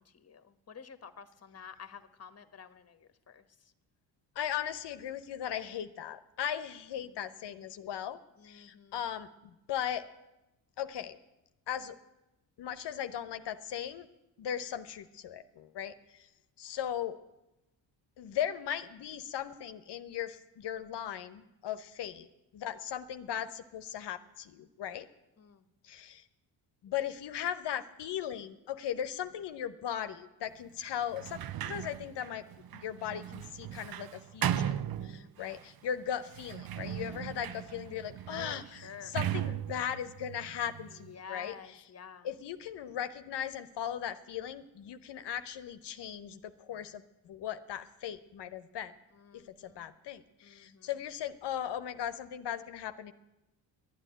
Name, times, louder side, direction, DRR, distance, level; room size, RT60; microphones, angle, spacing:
voice 1, 0.0-3.4 7.0-7.4 8.4-9.0 25.4-25.7 35.1-35.6 37.1-37.4 38.3-39.1 39.4-39.6 40.9-42.3 49.1-49.9 50.4-50.9, left 6 dB, 35° left, 11 dB, 1.2 m, -50 dB
voice 2, 4.3-8.2 8.4-9.3 9.7-10.0 10.8-11.2 11.7-11.9 12.6-14.1 14.4-16.3 16.6-17.2 18.2-22.3 22.5-25.1 25.8-26.2 26.8-32.4 32.8-41.8 42.2-48.9 49.3-53.1, left 9 dB, 65° left, 11 dB, 1.0 m, -38 dB
Sliding door, 31.1-35.6 36.3-41.1, right 10 dB, 55° right, 0.7 m, -37 dB
11.5 x 9.2 x 9.9 m, 0.96 s
supercardioid pair, 65°, 44 cm